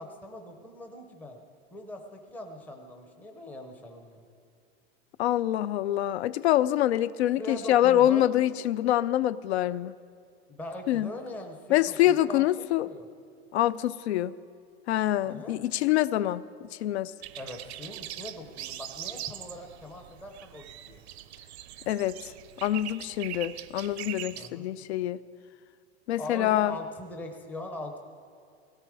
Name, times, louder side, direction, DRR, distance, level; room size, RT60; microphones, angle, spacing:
voice 1, 0.0-1.4 1.7-4.3 7.4-8.3 10.5-13.0 15.2-15.6 17.4-21.0 24.4-24.7 26.2-28.0, left 1 dB, 5° left, 4 dB, 0.6 m, -41 dB
voice 2, 5.2-9.9 10.9-11.1 11.7-12.9 13.5-14.3 14.9-16.4 16.8-17.1 21.9-22.3 22.6-25.2 26.1-26.7, left 13 dB, 75° left, 17 dB, 0.5 m, -25 dB
sound 1, 17.2-24.5, right 13 dB, 70° right, 0.7 m, -42 dB
17.5 x 16.5 x 4.8 m, 2.3 s
supercardioid pair, 175°, 33 cm